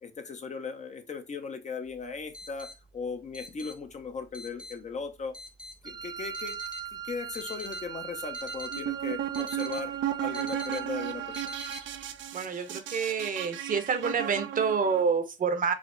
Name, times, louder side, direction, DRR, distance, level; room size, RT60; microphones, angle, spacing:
voice 1, 0.0-5.3 5.8-6.6 7.0-9.9 10.2-11.5, left 5 dB, 35° left, 0.8 m, -38 dB
sound 1, 1.9-12.2, left 1 dB, 5° right, 0.8 m, -46 dB
Wind instrument woodwind instrument, 5.8-11.9, right 10 dB, 20° right, 0.4 m, -40 dB
sound 2, 8.7-15.0, right 11 dB, 70° right, 0.5 m, -35 dB
voice 2, 12.3-15.7, right 5 dB, 45° right, 0.8 m, -28 dB
4.9 x 2.0 x 3.8 m
cardioid pair, 90°, 20 cm